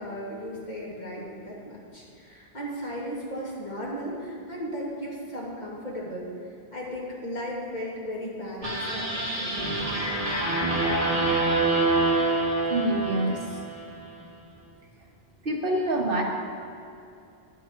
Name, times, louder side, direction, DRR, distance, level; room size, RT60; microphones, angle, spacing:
voice 1, 0.0-6.3 6.7-9.6, equal, 40° left, -6 dB, 2.7 m, -36 dB
sound 1, 8.6-13.9, right 2 dB, 35° right, 1.7 m, -26 dB
voice 2, 12.7-13.6 15.4-16.2, right 1 dB, 55° right, -1 dB, 1.6 m, -26 dB
10.5 x 10.5 x 4.6 m, 2.7 s
omnidirectional pair, 1.1 m